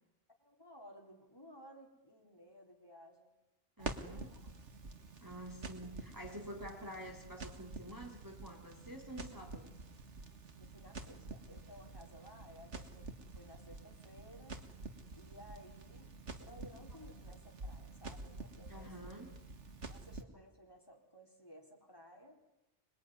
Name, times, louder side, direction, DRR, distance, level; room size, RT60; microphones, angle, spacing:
voice 1, 0.4-3.3 3.8-4.3 10.6-14.6 15.1-19.2 19.9-22.4, equal, 20° left, 1 dB, 4.4 m, -57 dB
voice 2, 3.8-4.4 5.2-9.7 18.7-19.3, right 1 dB, 15° right, 1 dB, 3.0 m, -48 dB
Crackle, 3.8-20.2, right 3 dB, 90° right, 2.2 m, -48 dB
26.0 x 22.0 x 9.7 m, 0.94 s
omnidirectional pair, 1.2 m